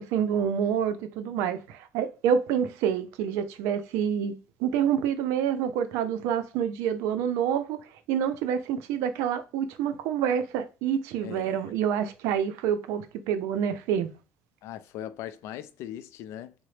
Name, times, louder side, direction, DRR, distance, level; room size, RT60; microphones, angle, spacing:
voice 1, 0.0-7.8 8.1-14.1, right 8 dB, 80° right, 0.5 m, -27 dB
voice 2, 11.2-11.7 14.6-16.5, left 11 dB, 75° left, 0.3 m, -39 dB
3.8 x 2.1 x 3.2 m
supercardioid pair, 95°, 5 cm